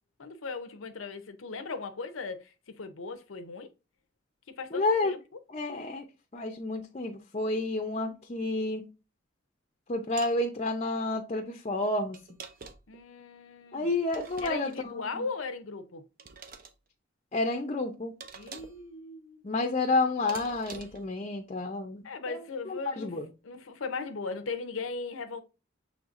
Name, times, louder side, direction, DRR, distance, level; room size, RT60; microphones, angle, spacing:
voice 1, 0.2-3.7 4.5-5.2 12.9-14.0 14.4-16.0 18.4-19.4 22.0-23.1 23.4-25.4, left 4 dB, 90° left, 0.7 m, -38 dB
voice 2, 4.7-5.2 5.5-6.0 6.3-8.8 9.9-12.2 13.7-14.7 15.1-15.2 17.3-18.1 19.4-22.4 22.7-23.3, left 2 dB, 35° left, 0.6 m, -30 dB
sound 1, 10.2-10.4 12.1-13.0 14.1-14.9 16.2-16.7 18.2-18.8 20.3-21.1, right 5 dB, 45° right, 0.7 m, -45 dB
6.4 x 3.2 x 2.5 m
head